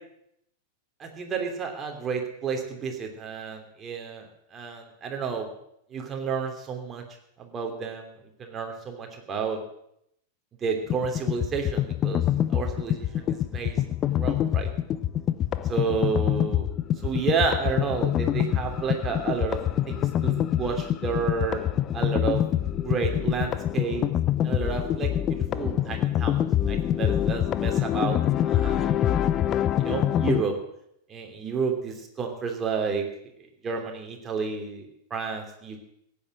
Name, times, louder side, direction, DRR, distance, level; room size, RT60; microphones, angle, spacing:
voice 1, 1.0-5.5 5.9-7.0 7.4-9.6 10.6-12.2 12.5-13.8 14.1-14.7 15.7-16.7 17.0-19.6 19.9-21.6 21.9-22.4 22.8-24.1 24.4-26.4 26.7-29.1 29.8-30.5 31.1-33.0 33.6-35.8, right 5 dB, 25° right, 3 dB, 3.1 m, -31 dB
sound 1, 10.9-30.4, left 11 dB, 30° left, 0.7 m, -25 dB
16.0 x 9.2 x 7.8 m, 0.75 s
figure-of-eight pair, 90°, 0 cm